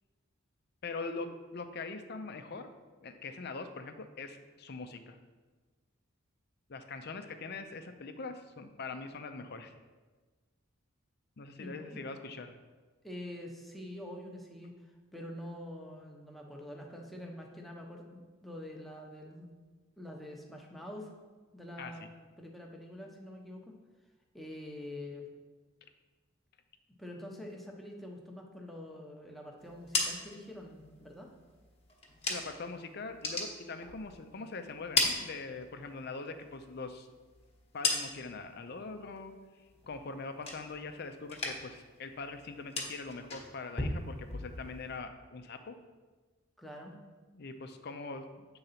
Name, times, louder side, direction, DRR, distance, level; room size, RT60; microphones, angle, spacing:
voice 1, 0.8-1.3 1.5-2.7 3.0-5.2 6.7-9.7 11.4-12.6 21.8-21.9 32.3-37.1 37.7-39.3 39.9-45.8 47.3-48.5, left 3 dB, 50° left, 8 dB, 0.6 m, -42 dB
voice 2, 11.6-12.0 13.0-14.7 15.1-19.5 20.0-21.1 21.5-22.1 22.4-23.7 24.3-25.3 27.0-31.3 46.6-46.9, left 1 dB, ahead, 0 dB, 0.9 m, -45 dB
sound 1, 29.6-32.7 33.0-34.4 34.7-36.0 36.3-38.5 38.8-39.3 39.7-41.0 41.2-41.9 42.1-45.0, left 3 dB, 30° left, 1.1 m, -37 dB
8.0 x 3.9 x 5.7 m, 1.3 s
head